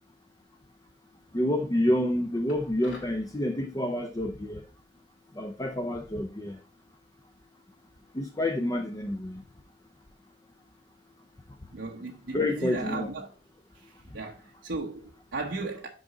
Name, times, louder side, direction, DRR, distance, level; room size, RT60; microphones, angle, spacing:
voice 1, 1.3-4.6 5.4-6.6 8.1-9.4 12.3-13.1, left 1 dB, 20° left, 0.5 m, -28 dB
sound 1, 2.5-3.2, left 2 dB, 80° left, 1.9 m, -48 dB
voice 2, 11.7-13.3 14.1-15.9, right 3 dB, 75° right, 0.9 m, -35 dB
6.2 x 5.1 x 3.8 m
head